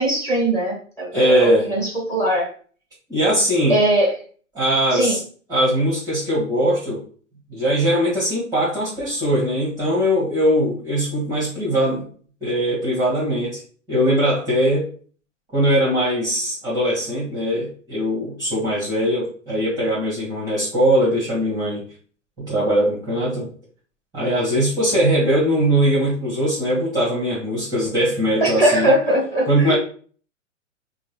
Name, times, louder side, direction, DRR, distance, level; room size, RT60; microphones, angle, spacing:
voice 1, 0.0-2.5 3.7-4.1 4.9-5.2 28.4-29.8, right 1 dB, 5° left, -3 dB, 1.7 m, -20 dB
voice 2, 1.1-1.7 3.1-3.8 4.5-5.2 5.5-7.0 7.5-12.0 12.4-13.6 13.9-14.9 15.5-21.8 22.4-23.5 24.1-28.9 29.4-29.7, equal, 10° right, -5 dB, 1.2 m, -20 dB
5.2 x 2.1 x 3.2 m, 0.43 s
figure-of-eight pair, 110°, 38 cm